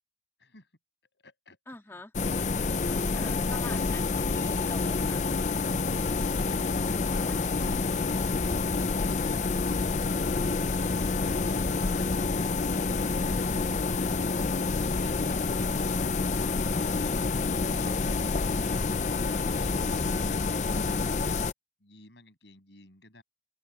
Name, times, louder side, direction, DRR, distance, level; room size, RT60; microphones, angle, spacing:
voice 1, 1.1-2.0 21.8-23.2, left 2 dB, 80° left, 7.9 m, -54 dB
voice 2, 1.7-2.1 2.9-5.7, left 2 dB, 15° left, 2.0 m, -47 dB
sound 1, 2.1-21.5, left 4 dB, 40° left, 0.6 m, -28 dB
sound 2, 9.6-13.6, left 1 dB, 60° left, 6.2 m, -49 dB
open air
head